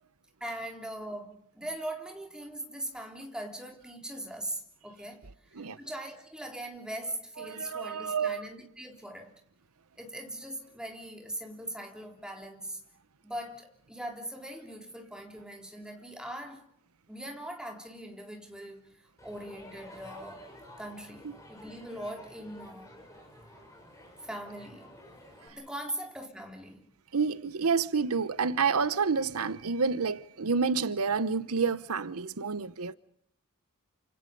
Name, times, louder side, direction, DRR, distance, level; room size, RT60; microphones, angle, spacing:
voice 1, 0.4-5.2 5.6-9.3 10.0-12.8 13.2-16.7 17.1-18.9 19.2-20.4 20.8-22.9 24.2-24.9 25.5-26.9, right 1 dB, 5° right, 3.6 m, -40 dB
voice 2, 7.4-8.5 21.2-21.4 27.1-32.9, right 5 dB, 85° right, 0.9 m, -29 dB
Crowd, 19.2-25.5, left 1 dB, 15° left, 7.5 m, -51 dB
29.0 x 26.5 x 5.3 m
head